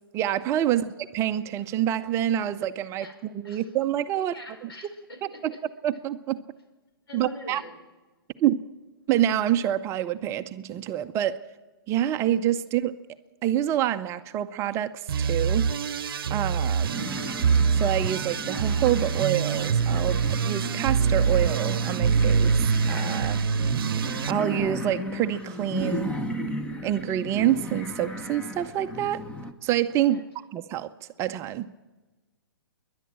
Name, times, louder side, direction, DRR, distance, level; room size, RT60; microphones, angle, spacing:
voice 1, 0.1-0.8 1.1-4.3 4.6-4.7 5.4-5.5 5.8-6.4 7.1-7.6 8.4-8.6 9.1-11.4 11.9-13.0 13.4-15.7 16.3-17.1 17.7-23.4 23.8-26.2 26.8-29.2 29.6-30.2 30.5-30.9 31.2-31.7, right 11 dB, 20° right, 0.6 m, -27 dB
voice 2, 3.0-3.7 4.2-5.6 7.1-7.7 30.0-30.2, left 1 dB, 80° left, 5.1 m, -44 dB
sound 1, 15.1-24.3, right 6 dB, 65° right, 0.8 m, -25 dB
sound 2, 16.9-29.5, left 1 dB, 10° left, 1.0 m, -35 dB
27.5 x 11.0 x 8.7 m
hypercardioid pair, 135°, 13 cm